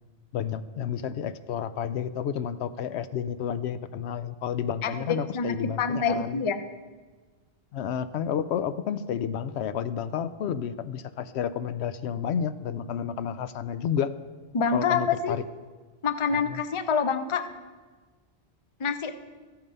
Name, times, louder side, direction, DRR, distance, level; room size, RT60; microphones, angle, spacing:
voice 1, 0.3-6.4 7.7-14.1 14.7-15.4 16.3-16.6, left 8 dB, 80° left, 12 dB, 0.8 m, -31 dB
voice 2, 4.8-6.6 14.5-15.4 16.0-17.4 18.8-19.1, left 5 dB, 35° left, 10 dB, 0.6 m, -26 dB
14.0 x 8.8 x 5.4 m, 1.4 s
omnidirectional pair, 1.1 m